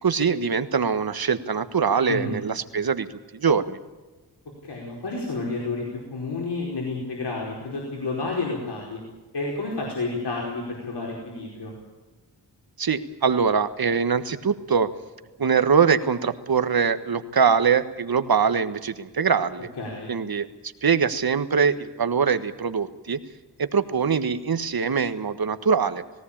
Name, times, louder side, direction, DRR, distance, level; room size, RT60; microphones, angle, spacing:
voice 1, 0.0-3.1 3.3-3.8 12.8-14.9 15.4-19.7 20.1-20.5 20.8-23.2 23.6-26.0, right 6 dB, 60° right, 10 dB, 1.5 m, -23 dB
voice 2, 2.1-2.4 4.6-9.0 9.3-11.7 19.8-20.1, left 3 dB, 80° left, -2 dB, 4.9 m, -30 dB
19.0 x 17.5 x 8.7 m, 1.2 s
wide cardioid pair, 70°, 40 cm